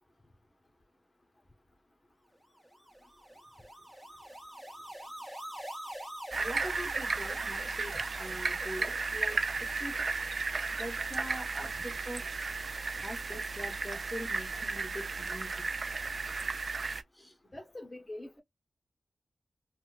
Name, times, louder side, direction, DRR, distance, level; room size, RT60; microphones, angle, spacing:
sound 1, 2.6-11.8, equal, 15° right, 1.4 m, -47 dB
sound 2, 6.3-17.0, right 4 dB, 60° right, 0.4 m, -34 dB
voice 1, 6.4-10.3 10.7-12.2 13.0-15.6 17.1-17.4, equal, 10° left, 1.5 m, -43 dB
voice 2, 17.5-18.4, left 1 dB, 30° left, 1.0 m, -44 dB
4.1 x 2.3 x 2.4 m
cardioid pair, 60°, 0 cm